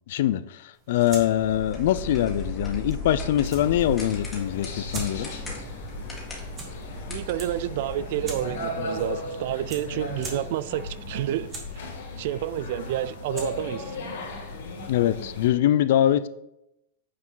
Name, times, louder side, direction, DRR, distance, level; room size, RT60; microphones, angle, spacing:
voice 1, 0.1-5.3 14.9-16.3, left 12 dB, 60° left, 0.4 m, -23 dB
sound 1, 0.7-15.1, right 3 dB, 20° right, 1.5 m, -45 dB
sound 2, 1.3-8.6, left 1 dB, 10° left, 1.8 m, -37 dB
sound 3, 3.5-15.5, left 2 dB, 75° left, 2.7 m, -36 dB
voice 2, 7.1-11.9 12.2-13.9, right 12 dB, 55° right, 0.3 m, -30 dB
8.5 x 4.7 x 3.9 m
supercardioid pair, 150°, 0 cm